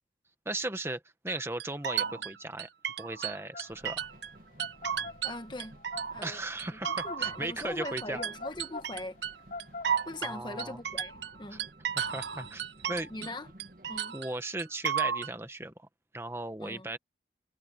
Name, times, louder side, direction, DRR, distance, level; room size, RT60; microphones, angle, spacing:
voice 1, 0.4-2.7 3.0-4.1 6.2-8.2 10.2-10.8 11.5-11.6 11.9-12.6 12.9-13.3 14.1-15.9 16.1-17.0, right 2 dB, 15° right, 1.3 m, -37 dB
sound 1, 1.3-4.3 4.6-6.3 6.6-13.3 13.6-15.3, right 8 dB, 85° right, 1.1 m, -34 dB
sound 2, 3.5-10.6, left 3 dB, 50° left, 3.4 m, -43 dB
sound 3, 3.7-14.0, right 1 dB, 50° right, 1.7 m, -56 dB
voice 2, 5.2-5.8 6.1-6.4 6.7-9.2 10.1-11.7 13.1-13.5 13.9-14.2 16.6-16.9, left 2 dB, 25° left, 1.1 m, -41 dB
head